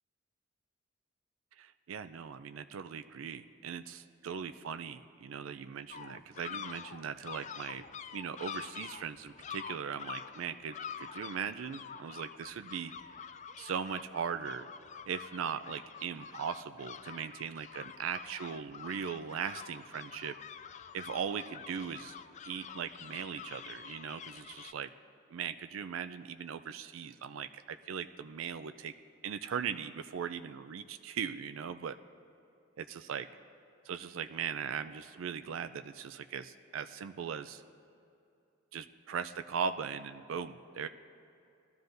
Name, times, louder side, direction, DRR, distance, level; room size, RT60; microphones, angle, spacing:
voice 1, 1.6-7.8 8.1-12.9 13.6-14.6 15.1-20.3 20.9-22.1 22.4-24.9 25.3-28.9 29.2-32.0 32.8-33.3 33.8-37.6 38.7-40.9, right 7 dB, 90° right, 10 dB, 0.4 m, -39 dB
sound 1, 5.9-24.7, left 7 dB, 35° left, 0.3 m, -47 dB
20.0 x 13.0 x 2.6 m, 2.7 s
head